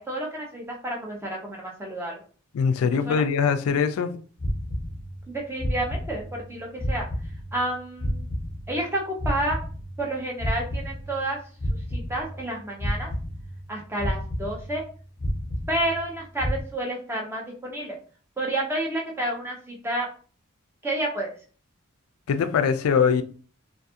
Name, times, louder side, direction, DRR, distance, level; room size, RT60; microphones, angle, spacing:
voice 1, 0.0-2.2 3.1-3.2 5.3-7.1 7.5-8.3 8.7-9.6 10.0-11.4 11.9-13.1 13.7-14.8 15.7-18.0 18.4-20.1 20.8-21.3, right 1 dB, 10° right, -2 dB, 0.7 m, -30 dB
voice 2, 2.5-4.1 22.3-23.2, left 6 dB, 85° left, 10 dB, 0.3 m, -22 dB
sound 1, 4.4-5.3 5.6-6.5 6.8-8.9 9.2-11.3 11.6-12.5 12.8-13.7 14.0-14.9 15.2-16.1 16.4-16.6, equal, 10° left, 1.0 m, -30 dB
2.4 x 2.4 x 2.7 m, 0.40 s
head